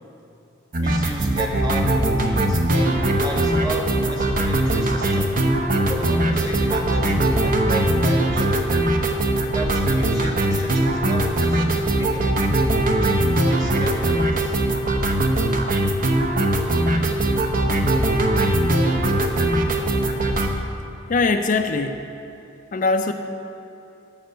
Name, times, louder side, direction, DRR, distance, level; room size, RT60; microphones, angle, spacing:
sound 1, 0.7-20.5, right 1 dB, 45° right, 0.7 m, -20 dB
voice 1, 0.8-5.5 5.8-8.7 9.5-12.4 13.0-14.6, equal, 20° right, 0 dB, 1.3 m, -34 dB
voice 2, 21.1-22.1 22.7-23.1, left 3 dB, 45° left, 6 dB, 0.4 m, -21 dB
9.0 x 5.6 x 7.7 m, 2.8 s
head